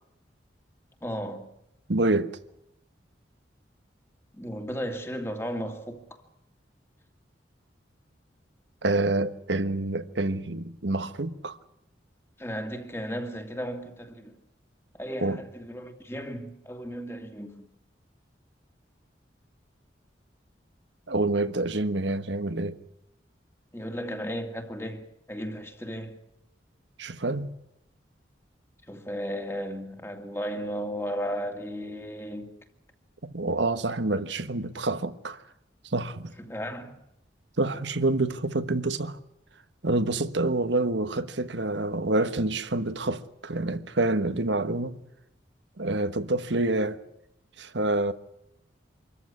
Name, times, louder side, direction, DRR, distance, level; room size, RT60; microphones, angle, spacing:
voice 1, 1.0-1.5 4.3-6.2 12.4-14.3 14.9-17.7 23.7-26.2 28.9-32.5 36.5-37.0, equal, 15° left, 2.3 m, -35 dB
voice 2, 1.9-2.3 8.8-11.6 15.2-15.4 21.1-22.8 27.0-27.5 33.2-35.4 35.8-36.3 37.6-39.2 39.8-45.0 45.8-47.0 47.6-48.1, right 2 dB, 75° right, 1.3 m, -27 dB
26.0 x 14.5 x 9.7 m
head